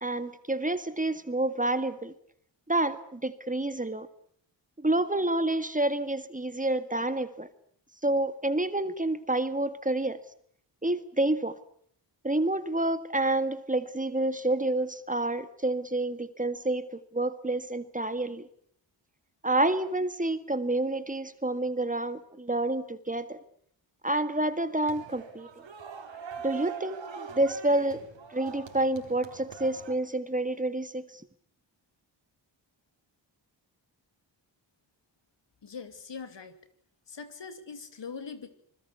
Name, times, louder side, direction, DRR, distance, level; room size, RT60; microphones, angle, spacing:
voice 1, 0.0-2.1 2.7-4.1 4.8-7.5 8.0-10.2 10.8-11.6 12.2-18.5 19.4-23.4 24.0-25.5 26.4-28.0 28.3-31.1, right 2 dB, 15° right, 12 dB, 1.8 m, -28 dB
sound 1, 24.8-29.9, right 6 dB, 75° right, 4.3 m, -43 dB
voice 2, 35.6-36.6 37.1-38.5, left 5 dB, 70° left, 10 dB, 2.9 m, -42 dB
26.5 x 20.5 x 8.3 m, 0.64 s
cardioid pair, 70°, 45 cm